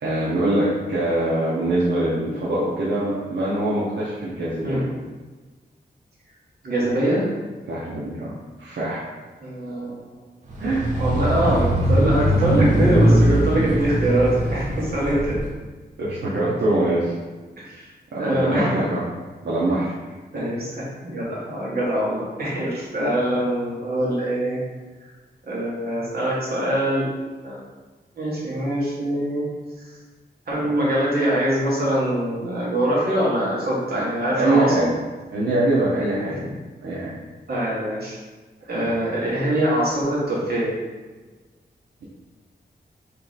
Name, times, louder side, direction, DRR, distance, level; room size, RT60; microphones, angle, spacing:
voice 1, 0.0-4.9 7.7-9.0 10.6-10.9 16.0-17.1 18.1-19.0 19.4-19.9 23.0-23.1 33.9-35.0 35.3-36.4 36.8-37.1 38.7-39.0, right 1 dB, 80° right, -8 dB, 0.7 m, -23 dB
voice 2, 6.6-7.3 9.4-10.2 11.0-15.4 17.6-17.9 18.2-18.8 20.3-24.6 25.4-27.1 27.4-27.6 28.2-29.4 30.5-34.9 37.5-38.2 38.7-40.7, right 1 dB, 60° right, -6 dB, 1.2 m, -23 dB
sound 1, 10.5-15.5, right 1 dB, 45° right, 0.7 m, -21 dB
3.1 x 2.9 x 3.8 m, 1.3 s
wide cardioid pair, 170°, 18 cm